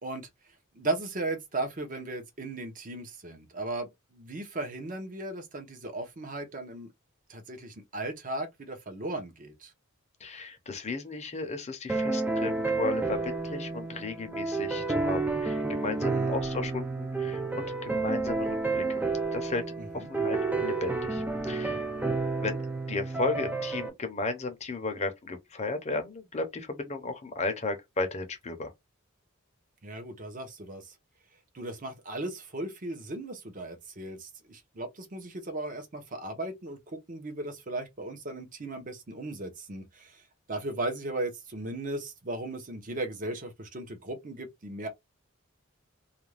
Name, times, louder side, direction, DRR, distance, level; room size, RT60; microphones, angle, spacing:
voice 1, 0.0-6.9 7.3-9.7 15.9-16.4 19.8-20.1 29.8-30.9 31.5-44.9, right 2 dB, 40° right, 0.7 m, -37 dB
voice 2, 10.2-19.1 19.3-19.6 19.9-22.0 22.4-22.6 22.9-28.7, left 3 dB, 30° left, 0.7 m, -34 dB
sound 1, 11.9-23.9, right 3 dB, 10° right, 0.3 m, -30 dB
2.5 x 2.2 x 3.2 m
head